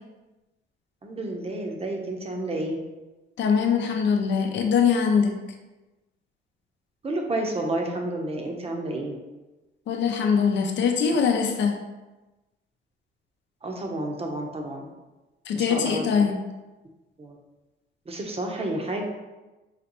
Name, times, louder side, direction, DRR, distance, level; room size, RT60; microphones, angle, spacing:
voice 1, 1.0-2.8 7.0-9.2 13.6-14.9 15.5-16.2 17.2-17.4 18.1-19.0, right 1 dB, 30° right, 1 dB, 0.8 m, -30 dB
voice 2, 3.4-5.3 9.9-11.7 15.5-16.4, left 6 dB, 65° left, 3 dB, 0.6 m, -22 dB
4.1 x 3.1 x 3.0 m, 1.1 s
cardioid pair, 90°, 20 cm